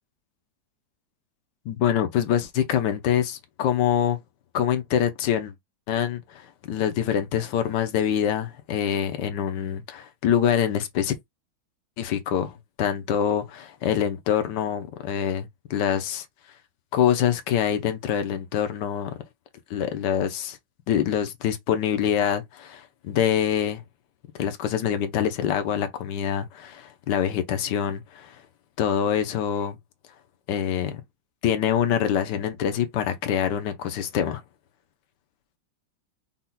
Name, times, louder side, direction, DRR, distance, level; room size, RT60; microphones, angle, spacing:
voice 1, 1.6-4.2 4.5-5.5 5.9-11.1 12.0-16.2 16.9-19.2 19.7-20.6 20.9-23.8 24.4-28.4 28.8-29.8 30.5-31.0 31.4-34.4, left 9 dB, 70° left, 1.4 m, -25 dB
5.8 x 2.4 x 3.8 m
omnidirectional pair, 2.1 m